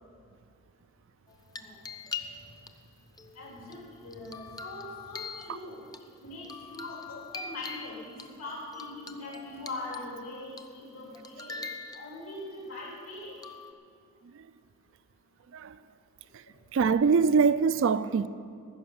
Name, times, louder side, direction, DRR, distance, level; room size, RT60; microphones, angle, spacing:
sound 1, 1.3-2.7 3.2-6.0 6.4-8.3 8.7-10.2 10.6-10.9 11.1-12.4 13.4-13.7, left 5 dB, 20° left, 0.6 m, -43 dB
voice 1, 3.3-5.8 6.2-11.6 11.9-13.3, left 2 dB, 80° left, 3.4 m, -41 dB
voice 2, 16.7-18.3, right 5 dB, 65° right, 0.4 m, -23 dB
15.0 x 6.6 x 8.7 m
head